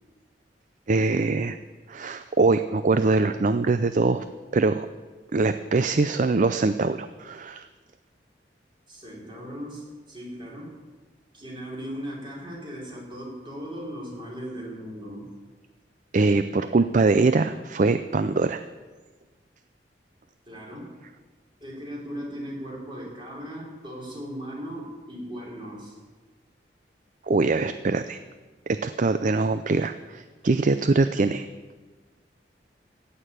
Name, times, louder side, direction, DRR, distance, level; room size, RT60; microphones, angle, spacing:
voice 1, 0.9-1.6 1.9-4.2 4.5-4.9 5.3-7.7 16.1-18.6 27.3-28.2 28.7-31.5, right 3 dB, 45° right, 11 dB, 0.4 m, -23 dB
voice 2, 8.9-10.8 11.3-15.3 20.5-21.0 21.6-26.0, equal, 30° right, -3 dB, 4.2 m, -38 dB
16.0 x 6.7 x 8.9 m, 1.4 s
head